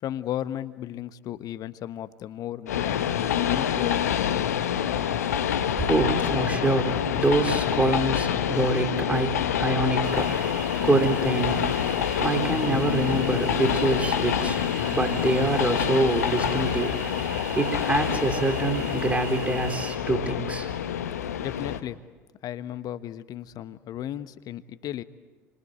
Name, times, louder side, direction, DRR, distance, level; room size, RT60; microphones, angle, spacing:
voice 1, 0.0-4.5 21.4-22.0 22.4-25.0, left 12 dB, 45° left, 13 dB, 1.2 m, -35 dB
Train, 2.7-21.8, left 9 dB, 70° left, 1.2 m, -27 dB
voice 2, 5.5-20.7, right 2 dB, 15° right, 4 dB, 3.8 m, -26 dB
sound 1, 10.0-20.0, right 7 dB, 60° right, 4.2 m, -41 dB
29.5 x 25.0 x 8.0 m, 1.3 s
figure-of-eight pair, 60°, 9 cm